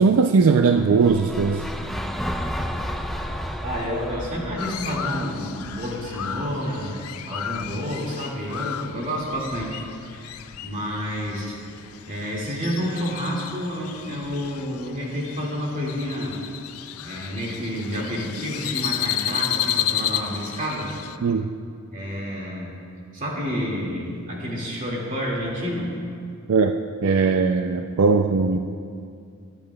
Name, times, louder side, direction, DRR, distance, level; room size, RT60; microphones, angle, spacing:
voice 1, 0.0-1.7 21.2-21.5 26.5-26.7 27.0-28.6, right 4 dB, 75° right, 6 dB, 0.4 m, -19 dB
sound 1, 0.7-6.8, equal, ahead, 0.4 m, -33 dB
voice 2, 3.6-9.8 10.1-11.6 12.1-16.4 17.0-20.9 21.9-22.7 23.1-25.9, equal, 40° right, -4 dB, 2.1 m, -29 dB
Crow, 4.6-21.2, left 11 dB, 85° left, 0.4 m, -32 dB
22.0 x 8.6 x 2.3 m, 2.3 s
head